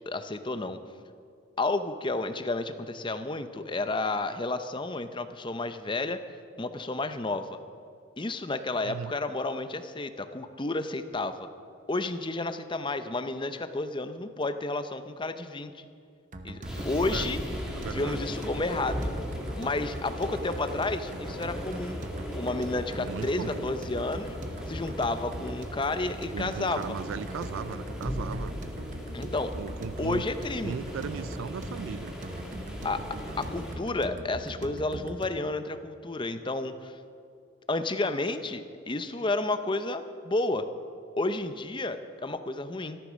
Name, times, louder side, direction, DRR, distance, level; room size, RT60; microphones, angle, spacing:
voice 1, 0.1-0.8 1.6-6.2 6.6-7.6 8.2-11.5 11.9-15.8 16.4-17.4 17.8-19.1 19.6-22.0 22.4-24.4 24.7-26.9 29.1-29.5 30.0-30.8 32.8-33.0 33.4-37.0 37.7-40.7 41.2-43.0, left 2 dB, 25° left, 10 dB, 0.6 m, -31 dB
voice 2, 8.8-9.1 17.1-17.3 17.8-18.2 23.0-23.7 26.3-28.6 29.6-30.2 30.6-32.1, right 7 dB, 70° right, 18 dB, 0.3 m, -37 dB
sound 1, 16.3-35.5, right 1 dB, 35° right, 0.8 m, -42 dB
sound 2, 16.6-33.7, equal, 5° right, 2.1 m, -38 dB
13.5 x 13.0 x 6.3 m, 2.4 s
head